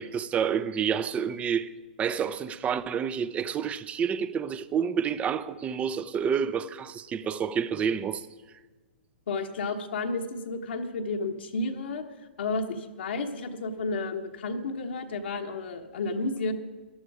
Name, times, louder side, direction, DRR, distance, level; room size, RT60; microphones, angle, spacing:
voice 1, 0.0-1.7 2.0-8.3, right 7 dB, 20° right, 0.6 m, -29 dB
voice 2, 9.3-12.0 12.4-16.5, left 3 dB, 75° left, 1.3 m, -32 dB
15.0 x 11.0 x 4.9 m
hypercardioid pair, 125°, 6 cm